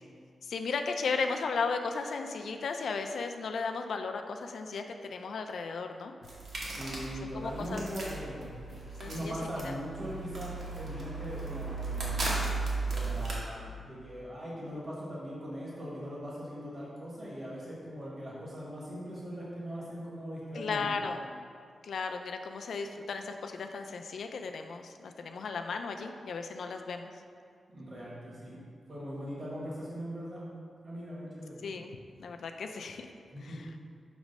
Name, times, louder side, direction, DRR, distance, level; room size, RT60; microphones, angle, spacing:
voice 1, 0.4-6.1 7.3-7.9 9.0-9.7 20.5-21.2 21.8-27.1 31.6-31.9 32.2-33.1 33.4-33.7, left 4 dB, 70° left, 5 dB, 0.4 m, -35 dB
sound 1, 6.2-13.4, right 3 dB, 60° right, 1.2 m, -36 dB
voice 2, 6.6-8.5 9.0-12.2 12.8-21.0 27.7-28.6 28.9-30.5 30.8-31.7 33.3-33.7, equal, 35° right, -6 dB, 1.2 m, -40 dB
6.1 x 3.1 x 5.3 m, 2.2 s
wide cardioid pair, 165°, 0 cm